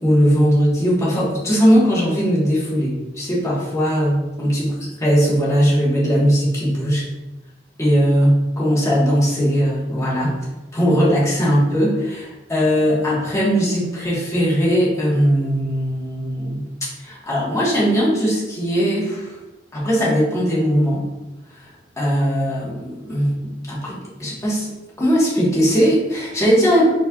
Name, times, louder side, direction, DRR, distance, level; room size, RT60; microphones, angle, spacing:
voice 1, 0.0-4.7 5.0-7.0 7.8-10.4 10.7-16.7 17.0-19.4 19.7-21.1 21.5-21.7 22.0-23.4 23.7-24.7 25.0-26.9, equal, 15° left, -7 dB, 1.3 m, -19 dB
4.2 x 4.2 x 2.3 m, 1.0 s
head